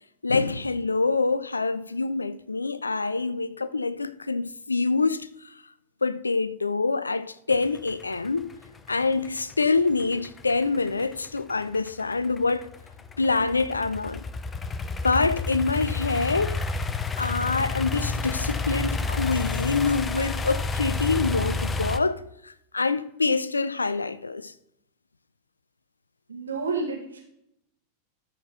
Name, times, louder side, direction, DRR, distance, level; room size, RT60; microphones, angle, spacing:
voice 1, 0.2-5.5 6.0-8.5 8.9-12.7 13.2-14.2 15.0-16.7 17.2-24.5, left 4 dB, 80° left, 0.4 m, -26 dB
sound 1, 7.5-22.0, left 3 dB, 15° left, 0.5 m, -30 dB
voice 2, 26.3-27.2, right 4 dB, 75° right, 1.7 m, -30 dB
13.0 x 4.4 x 3.6 m
figure-of-eight pair, 90°, 0 cm